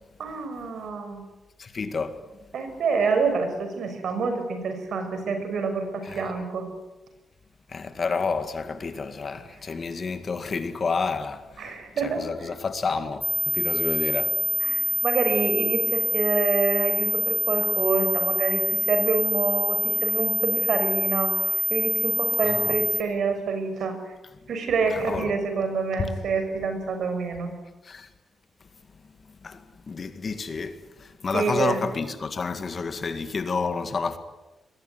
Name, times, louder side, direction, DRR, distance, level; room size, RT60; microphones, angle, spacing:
voice 1, 0.2-1.2 2.5-6.7 11.6-12.2 14.6-24.1 24.5-27.5 31.3-31.8, right 4 dB, 60° right, 6.5 m, -27 dB
voice 2, 1.6-2.2 6.0-6.2 7.7-14.4 22.4-22.8 24.9-25.4 27.8-28.1 29.4-34.2, left 4 dB, 35° left, 1.9 m, -30 dB
sound 1, 13.2-23.0, left 2 dB, 15° left, 1.9 m, -25 dB
26.5 x 22.0 x 9.7 m
wide cardioid pair, 155°, 0 cm